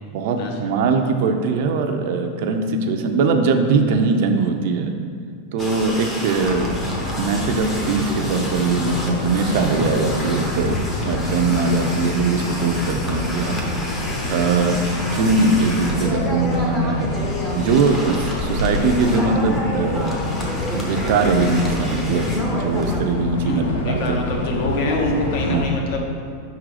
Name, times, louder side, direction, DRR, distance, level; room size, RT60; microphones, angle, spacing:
voice 1, 0.1-4.9 5.5-6.7 7.2-10.8 11.1-13.6 14.3-14.8 15.1-17.1 17.5-20.2 20.7-24.2 25.5-25.7, right 4 dB, 55° right, 5 dB, 0.4 m, -21 dB
sound 1, 5.6-23.0, left 1 dB, 15° left, 0.7 m, -30 dB
sound 2, 6.4-25.7, left 2 dB, 80° left, 0.8 m, -28 dB
voice 2, 23.4-26.0, left 1 dB, 50° left, 1 dB, 0.8 m, -25 dB
5.6 x 3.7 x 4.8 m, 2.2 s
supercardioid pair, 170°, 0 cm